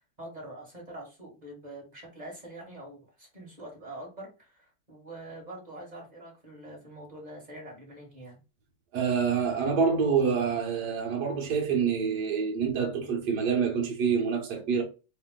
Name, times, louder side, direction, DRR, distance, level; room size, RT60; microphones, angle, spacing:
voice 1, 0.2-8.4, right 1 dB, 20° right, 1.6 m, -45 dB
voice 2, 8.9-14.8, right 6 dB, 60° right, 1.3 m, -27 dB
3.6 x 2.7 x 3.6 m
omnidirectional pair, 2.4 m